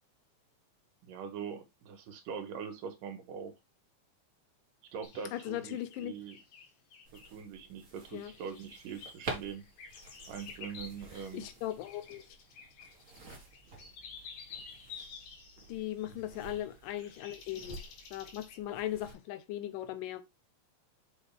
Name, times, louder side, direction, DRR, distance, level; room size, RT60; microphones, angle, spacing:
voice 1, 1.0-3.5 4.9-6.4 7.3-9.7 10.3-11.5 16.1-16.4, right 6 dB, 90° right, 3.0 m, -43 dB
sound 1, 5.0-7.4 8.1-18.6, left 6 dB, 70° left, 2.9 m, -51 dB
voice 2, 5.3-6.1 8.1-8.3 11.3-12.2 15.7-20.2, left 13 dB, 85° left, 2.5 m, -38 dB
sound 2, 7.0-19.1, right 2 dB, 30° right, 1.7 m, -49 dB
6.3 x 5.4 x 3.5 m
omnidirectional pair, 3.7 m